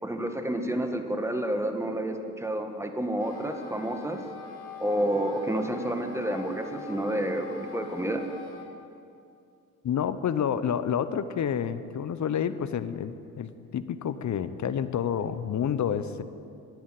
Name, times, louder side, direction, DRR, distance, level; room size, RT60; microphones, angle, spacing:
voice 1, 0.0-4.2 4.8-8.2, right 1 dB, 5° right, 5 dB, 1.7 m, -29 dB
Wind instrument woodwind instrument, 3.1-8.7, left 5 dB, 65° left, 2.0 m, -44 dB
voice 2, 9.8-16.2, left 8 dB, 40° left, 13 dB, 0.9 m, -29 dB
13.0 x 10.5 x 7.8 m, 2.5 s
hypercardioid pair, 55°, 43 cm